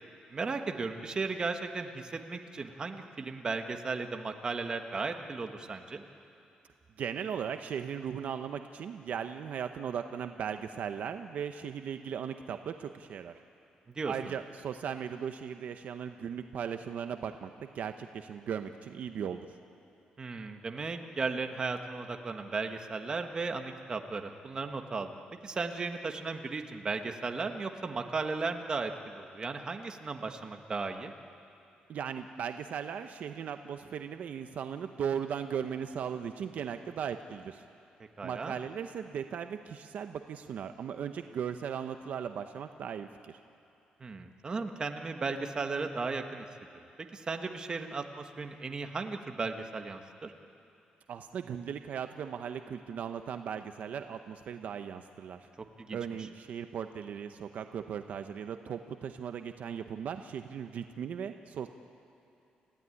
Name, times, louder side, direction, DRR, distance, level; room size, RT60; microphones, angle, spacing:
voice 1, 0.3-6.0 13.9-14.3 20.2-25.1 25.4-31.1 38.2-38.6 44.0-46.4 47.1-50.3 55.9-56.0, right 4 dB, 30° right, 5 dB, 1.4 m, -35 dB
voice 2, 7.0-13.3 14.1-19.5 31.9-37.6 38.2-43.3 51.1-55.5 55.9-61.7, right 8 dB, 65° right, 8 dB, 0.8 m, -37 dB
29.0 x 15.5 x 9.8 m, 2.7 s
cardioid pair, 150°, 3 cm